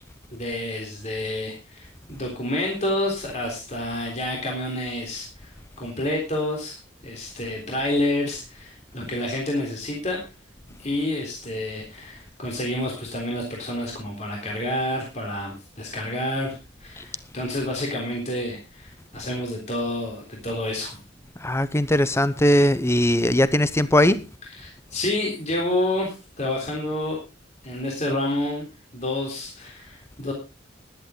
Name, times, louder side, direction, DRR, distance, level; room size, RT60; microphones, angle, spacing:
voice 1, 0.3-5.5 5.8-10.2 10.8-21.0 24.5-27.2 27.6-28.7 28.9-30.3, left 1 dB, 40° left, 3.7 m, -29 dB
voice 2, 21.4-24.2, left 1 dB, 15° left, 0.8 m, -20 dB
15.0 x 11.0 x 3.8 m
head